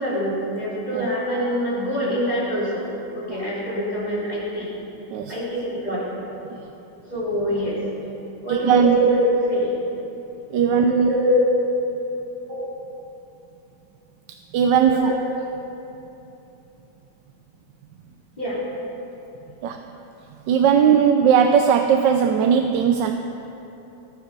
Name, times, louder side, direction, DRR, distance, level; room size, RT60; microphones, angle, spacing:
voice 1, 0.0-2.9 3.1-4.7 5.3-6.1 7.1-7.8 8.4-9.7 10.7-11.4 12.5-12.7 14.8-15.1 18.4-18.6, equal, 25° left, -7 dB, 3.3 m, -24 dB
voice 2, 8.5-9.0 10.5-11.1 14.5-15.1 19.6-19.8 20.5-23.1, right 7 dB, 85° right, 5 dB, 1.3 m, -18 dB
19.5 x 7.0 x 5.3 m, 2.9 s
omnidirectional pair, 1.9 m